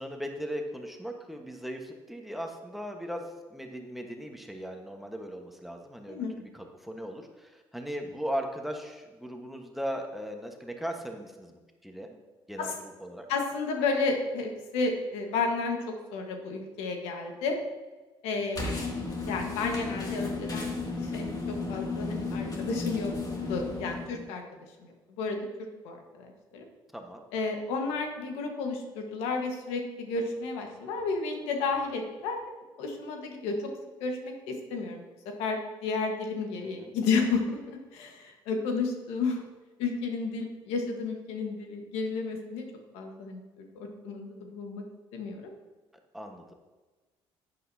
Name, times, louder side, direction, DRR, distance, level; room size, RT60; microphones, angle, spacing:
voice 1, 0.0-12.1 12.5-12.7 13.0-13.3 18.6-18.8 26.9-27.2 36.6-36.9 46.1-46.5, equal, ahead, 3 dB, 1.3 m, -38 dB
voice 2, 13.3-15.8 16.1-17.5 18.2-18.6 19.3-20.7 21.0-21.3 21.7-23.1 23.5-24.4 24.8-25.4 25.8-26.6 27.3-32.4 32.8-33.5 34.0-35.0 35.4-39.4 39.8-42.7 42.9-44.8 45.1-45.5, left 4 dB, 90° left, 3 dB, 1.4 m, -32 dB
sound 1, 18.5-24.3, left 3 dB, 40° left, 2.4 m, -34 dB
10.5 x 8.5 x 2.8 m, 1.3 s
cardioid pair, 85°, 10 cm